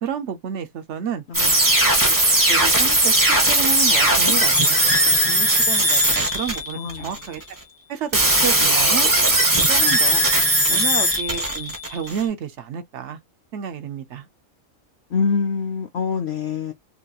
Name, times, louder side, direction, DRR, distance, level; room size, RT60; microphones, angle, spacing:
voice 1, 0.0-1.2 1.8-2.2 2.5-4.8 5.3-7.4 7.9-9.1 9.7-10.2 10.7-13.2 13.5-14.3, right 8 dB, 60° right, 0.9 m, -30 dB
voice 2, 1.3-1.9 6.7-7.2 10.7-10.9 15.1-16.7, left 5 dB, 60° left, 0.8 m, -26 dB
sound 1, 1.3-7.4 8.1-12.2, right 1 dB, 15° right, 0.8 m, -18 dB
3.2 x 2.8 x 2.3 m
omnidirectional pair, 1.5 m